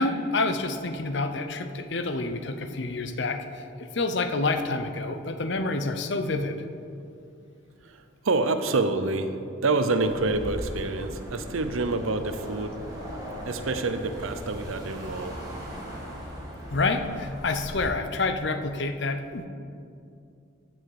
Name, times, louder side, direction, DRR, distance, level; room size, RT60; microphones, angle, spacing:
voice 1, 0.0-3.4 3.8-6.6 16.7-19.5, left 3 dB, 60° left, 8 dB, 0.7 m, -28 dB
voice 2, 7.8-12.8 13.5-15.4, right 3 dB, 90° right, 9 dB, 0.7 m, -27 dB
sound 1, 10.0-17.9, equal, 20° right, 2.3 m, -38 dB
14.5 x 6.2 x 4.9 m, 2.5 s
head